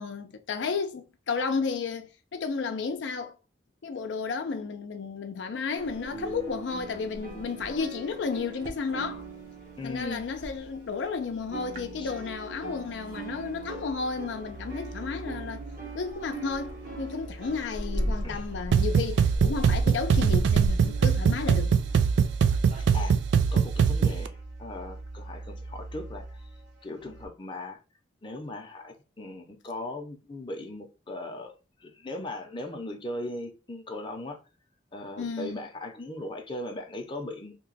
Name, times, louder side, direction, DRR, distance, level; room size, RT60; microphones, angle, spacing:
voice 1, 0.0-3.3 3.8-9.2 9.8-15.6 15.9-21.7 35.2-35.6, left 5 dB, 80° left, 0.5 m, -32 dB
sound 1, 5.8-11.1 11.4-22.8, right 1 dB, 50° right, 0.7 m, -38 dB
sound 2, 9.1-27.3, right 2 dB, 65° right, 1.1 m, -45 dB
voice 2, 9.8-10.3 12.0-12.1 18.2-18.5 22.9-23.2 23.5-24.3 24.6-26.3 26.8-27.8 28.2-31.5 31.8-34.4 34.9-37.6, left 2 dB, 30° left, 0.6 m, -38 dB
sound 3, 18.7-24.3, right 6 dB, 85° right, 0.3 m, -23 dB
2.9 x 2.2 x 3.8 m
head